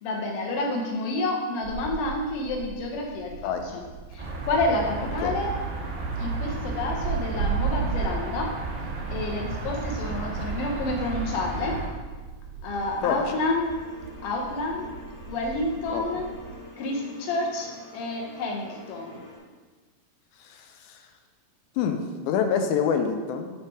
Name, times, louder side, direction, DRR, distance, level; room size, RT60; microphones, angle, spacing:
voice 1, 0.0-3.8 4.1-5.5 6.2-8.5 9.1-11.8 12.6-13.7 14.2-14.9 15.3-16.3 16.8-19.2, left 2 dB, 65° left, 0 dB, 1.7 m, -29 dB
sound 1, 1.6-16.6, right 6 dB, 90° right, 2.1 m, -36 dB
sound 2, 4.2-11.9, right 3 dB, 75° right, 0.5 m, -34 dB
sound 3, 12.7-19.4, left 1 dB, 45° left, 2.0 m, -46 dB
voice 2, 13.0-13.4 15.9-16.0 20.4-21.0 21.8-23.5, left 6 dB, 90° left, 5 dB, 2.0 m, -27 dB
8.5 x 3.4 x 4.8 m, 1.3 s
omnidirectional pair, 3.4 m